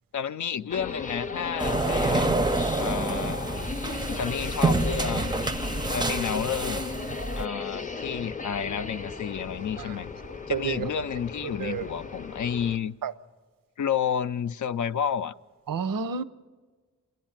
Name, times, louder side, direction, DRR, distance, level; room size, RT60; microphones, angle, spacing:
voice 1, 0.1-2.4 2.8-3.4 4.1-5.4 5.9-6.9 7.4-10.1 10.5-13.0 13.8-15.3, left 8 dB, 60° left, 0.5 m, -31 dB
sound 1, 0.7-12.8, left 4 dB, 25° left, 0.7 m, -36 dB
sound 2, 1.6-7.4, right 2 dB, 15° right, 0.5 m, -27 dB
voice 2, 10.5-10.9 11.6-11.9 13.0-13.1 15.7-16.2, right 6 dB, 80° right, 0.7 m, -30 dB
28.0 x 11.0 x 8.9 m
wide cardioid pair, 115°, 33 cm